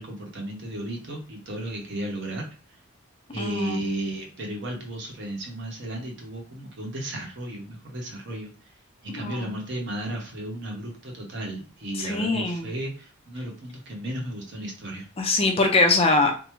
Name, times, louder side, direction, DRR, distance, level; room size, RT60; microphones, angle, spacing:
voice 1, 0.0-2.5 3.3-8.5 9.0-15.1, right 1 dB, 55° right, 0 dB, 0.9 m, -34 dB
voice 2, 3.4-3.8 9.1-9.4 12.0-12.7 15.2-16.3, left 2 dB, 25° left, 3 dB, 0.4 m, -22 dB
3.5 x 2.0 x 3.0 m, 0.38 s
head